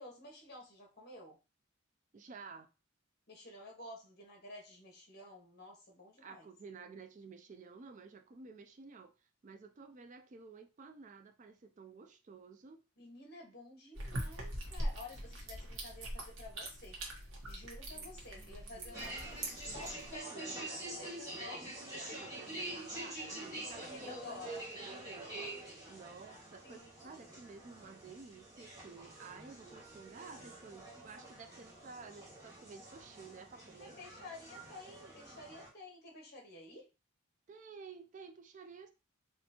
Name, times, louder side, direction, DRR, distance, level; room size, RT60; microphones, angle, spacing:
voice 1, 0.0-1.4 3.3-6.5 13.0-17.0 17.5-22.2 23.7-24.7 26.6-27.4 33.8-36.9, left 2 dB, 50° left, 1.4 m, -52 dB
voice 2, 2.1-2.7 6.2-12.8 17.9-19.2 20.3-20.9 22.0-24.6 24.8-25.5 25.9-34.0 37.5-38.9, right 5 dB, 35° right, 0.3 m, -53 dB
sound 1, 14.0-20.2, right 1 dB, 70° right, 1.2 m, -42 dB
sound 2, 18.9-35.7, right 1 dB, 15° right, 1.6 m, -46 dB
4.2 x 2.5 x 2.8 m
head